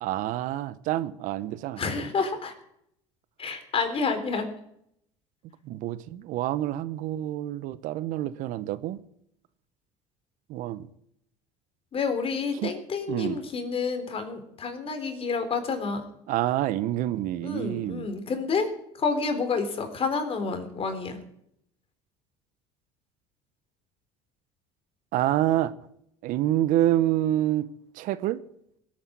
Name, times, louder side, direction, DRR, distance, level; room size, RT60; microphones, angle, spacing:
voice 1, 0.0-2.1 5.6-9.0 10.5-10.9 12.6-12.7 13.1-13.4 16.3-18.1 25.1-25.7 26.2-27.7 27.9-28.4, right 13 dB, 65° right, 0.9 m, -27 dB
voice 2, 1.8-2.5 3.4-4.5 11.9-16.0 17.4-18.7 19.0-21.2, left 4 dB, 40° left, 3.7 m, -29 dB
17.0 x 8.8 x 8.6 m
hypercardioid pair, 80°, 15 cm